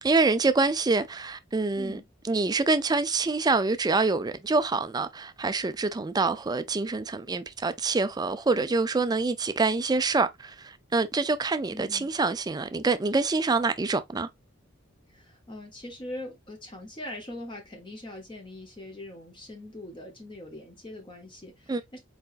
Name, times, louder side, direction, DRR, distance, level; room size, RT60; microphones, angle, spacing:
voice 1, 0.0-2.0 2.3-14.3 21.7-21.8, right 3 dB, 20° right, 0.4 m, -26 dB
voice 2, 1.7-2.1 11.7-12.1 15.1-22.0, left 1 dB, 25° left, 1.0 m, -42 dB
4.5 x 4.2 x 2.5 m
head